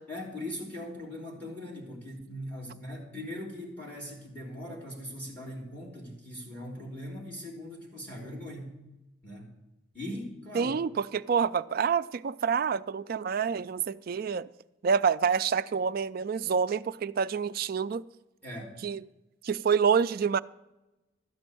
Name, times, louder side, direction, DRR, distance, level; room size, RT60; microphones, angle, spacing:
voice 1, 0.1-8.7 9.2-9.5 9.9-10.7 18.4-18.7, left 1 dB, 10° left, 3.1 m, -40 dB
voice 2, 10.5-14.5 14.8-18.0 18.8-19.0 19.4-20.4, right 6 dB, 45° right, 0.3 m, -27 dB
13.0 x 5.3 x 9.1 m
head